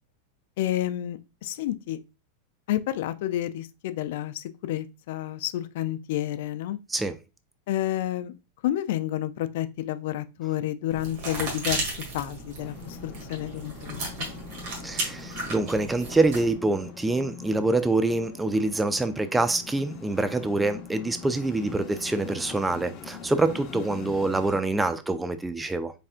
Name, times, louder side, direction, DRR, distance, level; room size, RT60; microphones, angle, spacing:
voice 1, 0.6-2.0 2.7-6.8 7.7-8.4 8.6-14.3, left 13 dB, 65° left, 0.4 m, -30 dB
sound 1, 10.9-16.5, right 2 dB, 60° right, 1.7 m, -35 dB
sound 2, 12.6-24.6, left 6 dB, 40° left, 0.9 m, -43 dB
voice 2, 14.8-25.9, right 2 dB, 10° right, 0.4 m, -25 dB
4.2 x 3.3 x 2.4 m
hypercardioid pair, 125°, 0 cm